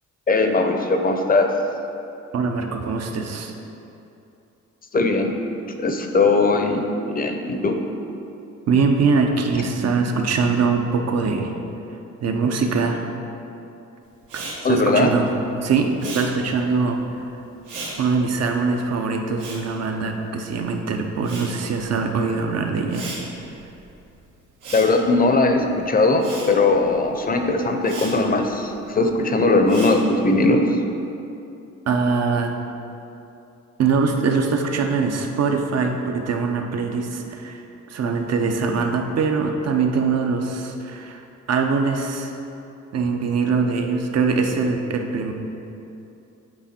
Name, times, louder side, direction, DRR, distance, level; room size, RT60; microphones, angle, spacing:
voice 1, 0.3-1.5 4.9-5.4 5.8-7.8 14.6-15.1 24.7-30.7, left 3 dB, 30° left, 5 dB, 0.7 m, -19 dB
voice 2, 2.3-3.5 8.7-11.5 12.2-13.1 14.3-15.3 15.6-17.0 18.0-23.1 31.9-32.5 33.8-37.6 37.9-41.2 41.5-42.3 42.9-45.3, right 4 dB, 55° right, 4 dB, 0.8 m, -22 dB
Respiratory sounds, 14.2-20.7 21.0-30.4, right 3 dB, 90° right, 1.6 m, -38 dB
8.5 x 4.5 x 4.3 m, 2.8 s
cardioid pair, 90°, 30 cm